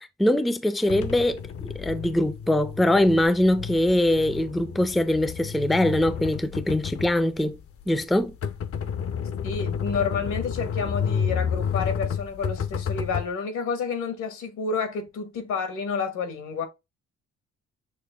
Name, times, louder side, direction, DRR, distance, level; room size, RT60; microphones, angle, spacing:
voice 1, 0.2-1.4 1.8-7.6 7.9-8.3, left 1 dB, ahead, 0.4 m, -22 dB
sound 1, 0.9-13.3, left 7 dB, 50° left, 0.6 m, -31 dB
voice 2, 9.4-16.7, left 5 dB, 80° left, 1.5 m, -30 dB
6.4 x 2.2 x 3.4 m
cardioid pair, 90°, 30 cm